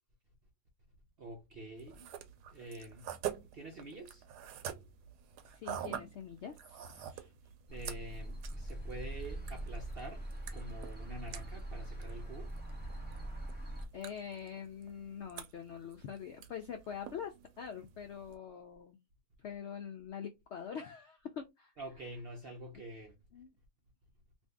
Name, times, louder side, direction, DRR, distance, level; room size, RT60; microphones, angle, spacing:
voice 1, 1.2-2.1 2.5-3.1 3.5-4.5 7.7-12.6 21.8-23.2, right 1 dB, 60° right, 0.6 m, -47 dB
sound 1, 1.8-18.4, right 10 dB, 80° right, 1.1 m, -48 dB
voice 2, 5.4-7.3 13.9-19.0 19.4-21.7 23.3-23.5, left 8 dB, 90° left, 0.6 m, -44 dB
sound 2, 7.7-13.9, right 1 dB, 15° right, 0.4 m, -42 dB
2.6 x 2.6 x 3.4 m
omnidirectional pair, 1.7 m